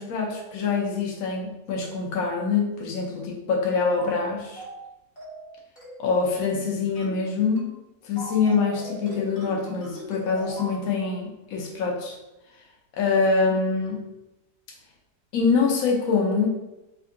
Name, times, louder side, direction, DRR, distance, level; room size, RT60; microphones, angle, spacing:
voice 1, 0.0-4.6 6.0-7.7 8.0-12.2 13.0-14.0 15.3-16.5, left 4 dB, 65° left, -1 dB, 1.0 m, -25 dB
sound 1, 4.0-4.2 4.6-4.8 5.2-5.4 5.8-6.0 6.4-6.6 7.0-7.2 7.6-7.8 8.2-10.8, equal, 20° left, 1.0 m, -39 dB
3.5 x 2.3 x 3.6 m, 0.96 s
omnidirectional pair, 1.8 m